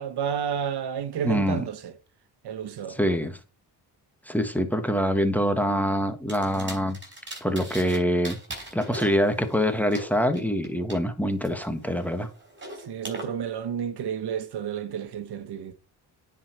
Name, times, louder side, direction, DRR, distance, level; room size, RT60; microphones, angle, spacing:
voice 1, 0.0-1.9 2.4-3.0 12.9-15.7, right 8 dB, 80° right, 1.3 m, -31 dB
voice 2, 1.2-1.6 2.9-3.4 4.3-7.0 7.4-8.4 8.7-12.3, equal, 5° left, 1.4 m, -25 dB
sound 1, 6.3-8.0 8.2-11.0 11.4-13.2, right 1 dB, 30° right, 5.0 m, -40 dB
9.6 x 5.0 x 4.5 m
cardioid pair, 95°, 39 cm